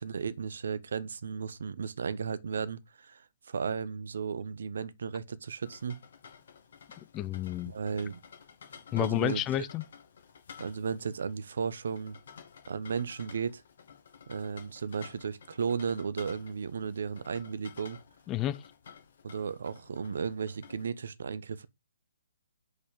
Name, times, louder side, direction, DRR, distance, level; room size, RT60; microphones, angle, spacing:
voice 1, 0.0-6.0 7.7-8.2 8.9-9.4 10.6-12.2 12.7-13.6 14.3-18.0 19.2-21.7, right 6 dB, 60° right, 0.8 m, -35 dB
sound 1, 5.6-20.9, left 7 dB, 50° left, 2.2 m, -53 dB
voice 2, 7.1-7.7 8.9-9.8 18.3-18.6, left 13 dB, 20° left, 0.5 m, -30 dB
6.0 x 5.5 x 5.1 m
figure-of-eight pair, 130°, 0 cm